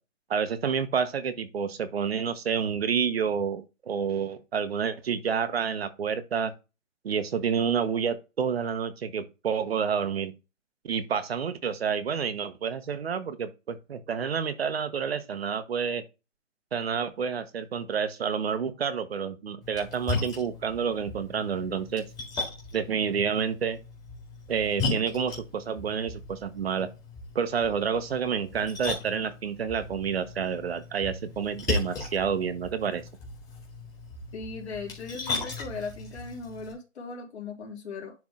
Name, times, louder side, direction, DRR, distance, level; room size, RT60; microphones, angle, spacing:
voice 1, 0.3-6.5 7.0-10.3 10.8-16.0 16.7-22.0 22.7-23.8 24.5-26.9 27.3-33.0, right 7 dB, 50° right, 1.2 m, -29 dB
Splash splatter, 19.6-36.7, left 3 dB, 10° left, 2.0 m, -37 dB
voice 2, 34.3-38.1, left 4 dB, 55° left, 3.3 m, -38 dB
10.5 x 3.6 x 3.7 m
hypercardioid pair, 165°, 39 cm